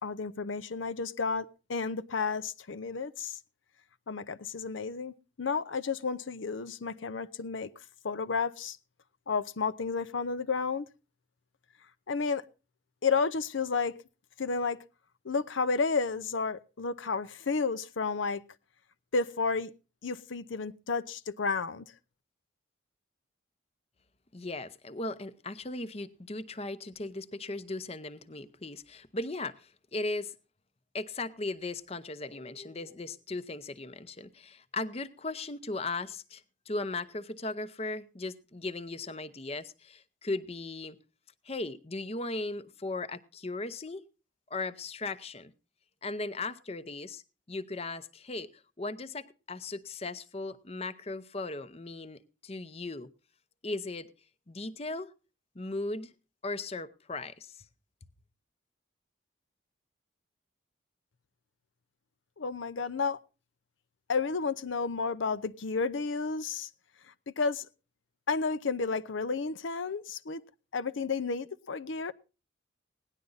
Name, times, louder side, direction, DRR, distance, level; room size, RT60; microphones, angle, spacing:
voice 1, 0.0-3.4 4.1-5.1 5.4-7.7 8.0-8.8 9.3-10.9 12.1-12.4 13.0-14.0 14.4-14.8 15.2-18.4 19.1-19.7 20.0-21.8 62.4-63.2 64.1-66.7 67.4-67.7 68.3-70.4 70.7-72.1, left 4 dB, 75° left, 0.6 m, -31 dB
voice 2, 24.3-30.3 30.9-41.0 41.4-44.0 44.5-45.5 46.0-47.2 47.5-53.1 53.6-54.1 54.5-55.1 55.5-56.1 56.4-57.6, left 2 dB, 30° left, 0.7 m, -37 dB
18.0 x 11.0 x 4.0 m
head